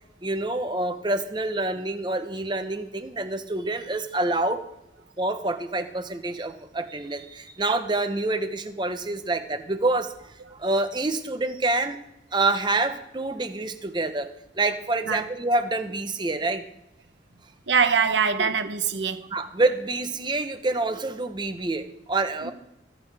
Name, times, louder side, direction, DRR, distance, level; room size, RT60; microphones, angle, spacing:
voice 1, 0.2-4.6 5.2-12.0 12.3-14.3 14.5-16.6 18.4-18.5 19.3-22.5, right 2 dB, 25° right, 0.7 m, -27 dB
voice 2, 17.7-19.2 22.4-22.5, right 6 dB, 75° right, 0.9 m, -23 dB
21.5 x 7.5 x 3.4 m
head